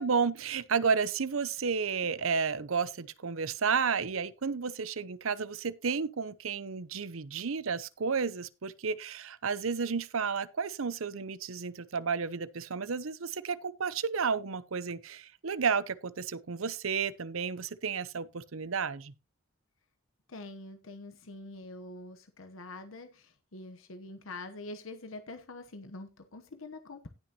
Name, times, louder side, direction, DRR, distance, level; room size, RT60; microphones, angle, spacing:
voice 1, 0.0-19.1, right 5 dB, 80° right, 0.7 m, -32 dB
voice 2, 20.3-27.1, left 2 dB, 75° left, 1.0 m, -45 dB
18.0 x 6.1 x 2.9 m
head